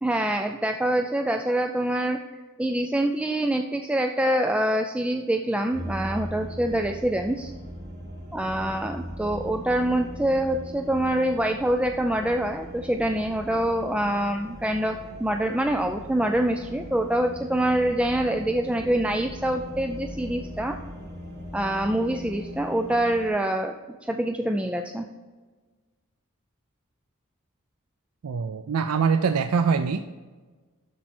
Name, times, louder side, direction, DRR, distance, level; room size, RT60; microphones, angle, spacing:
voice 1, 0.0-2.2 2.6-7.5 8.3-20.8 21.5-23.7 24.1-25.1, right 1 dB, 5° right, 5 dB, 0.3 m, -25 dB
sound 1, 5.7-23.3, left 1 dB, 50° right, 1.5 m, -40 dB
voice 2, 28.2-30.0, right 5 dB, 85° right, 9 dB, 0.4 m, -23 dB
12.0 x 4.6 x 4.3 m, 1.3 s
head